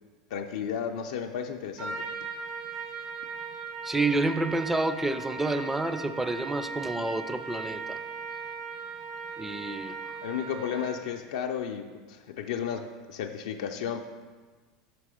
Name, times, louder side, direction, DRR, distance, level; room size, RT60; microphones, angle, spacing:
voice 1, 0.3-2.1 10.2-14.0, left 8 dB, 80° left, 3 dB, 0.4 m, -33 dB
Trumpet, 1.8-11.1, right 5 dB, 60° right, 0.7 m, -38 dB
voice 2, 3.8-8.0 9.4-10.0, right 2 dB, 10° right, 10 dB, 0.4 m, -29 dB
5.9 x 4.6 x 4.9 m, 1.4 s
supercardioid pair, 125°, 3 cm